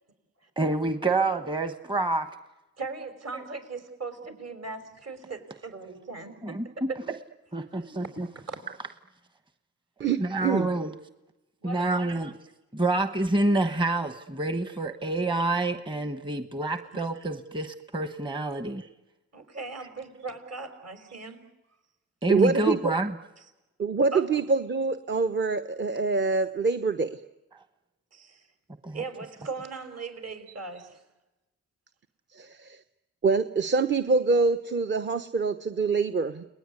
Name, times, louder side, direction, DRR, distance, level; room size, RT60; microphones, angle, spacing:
voice 1, 0.6-2.3 3.3-3.4 6.4-6.7 7.5-8.3 10.2-10.9 11.6-12.3 12.7-18.9 22.2-23.2 28.8-29.0, right 2 dB, 15° right, 9 dB, 1.1 m, -27 dB
voice 2, 2.8-7.0 7.8-7.9 8.4-8.6 11.6-12.0 19.3-21.4 24.1-24.3 28.1-28.5 28.9-31.0, right 4 dB, 55° right, 7 dB, 5.4 m, -38 dB
voice 3, 10.0-10.7 22.3-22.8 23.8-27.2 32.3-32.8 33.2-36.4, right 4 dB, 35° right, 9 dB, 1.0 m, -25 dB
30.0 x 19.5 x 9.8 m, 1.0 s
cardioid pair, 90°, 30 cm